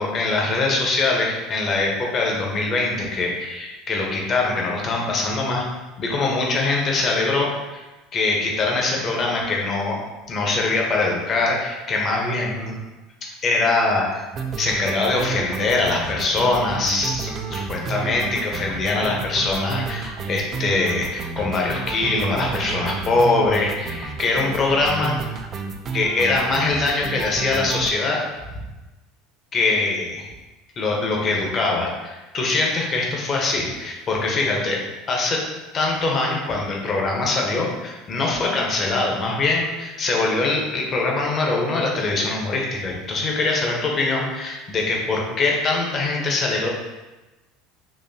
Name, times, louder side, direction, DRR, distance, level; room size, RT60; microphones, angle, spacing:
voice 1, 0.0-5.6 6.0-7.8 8.1-10.0 10.3-12.7 13.2-14.2 14.6-25.2 25.9-28.2 29.5-30.2 30.8-34.8 35.1-35.4 35.7-46.7, left 3 dB, 40° left, -1 dB, 0.9 m, -23 dB
sound 1, 14.3-27.9, right 5 dB, 40° right, 0.4 m, -31 dB
4.1 x 2.6 x 2.7 m, 1.1 s
hypercardioid pair, 90°, 0 cm